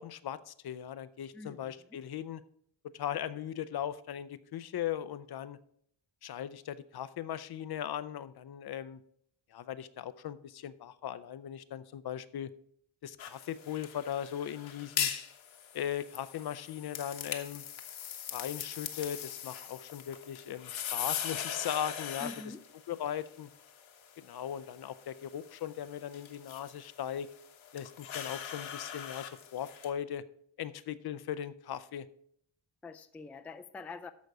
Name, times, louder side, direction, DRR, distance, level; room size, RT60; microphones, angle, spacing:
voice 1, 0.0-2.4 2.9-5.6 6.2-9.0 9.5-12.5 13.0-15.1 15.7-17.6 18.3-22.3 22.9-23.5 24.2-27.3 27.7-30.2 30.6-32.1, left 10 dB, 55° left, 15 dB, 0.5 m, -38 dB
voice 2, 1.3-1.7 22.2-22.6 32.8-34.1, left 3 dB, 5° left, 9 dB, 0.3 m, -45 dB
sound 1, 13.2-29.9, left 9 dB, 80° left, 1.2 m, -41 dB
13.5 x 5.2 x 4.7 m, 0.67 s
wide cardioid pair, 160°, 46 cm